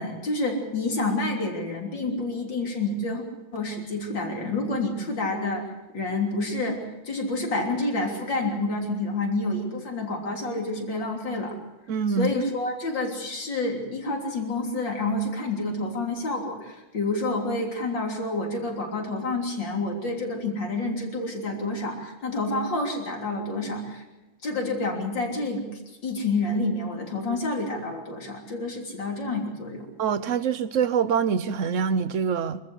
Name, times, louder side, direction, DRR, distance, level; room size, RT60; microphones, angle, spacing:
voice 1, 0.0-3.2 3.5-11.6 12.1-24.0 24.4-29.9, left 2 dB, 80° left, 1 dB, 4.1 m, -28 dB
voice 2, 11.9-12.4 30.0-32.6, right 6 dB, 55° right, 14 dB, 1.0 m, -25 dB
25.0 x 14.0 x 8.1 m, 1.1 s
omnidirectional pair, 2.0 m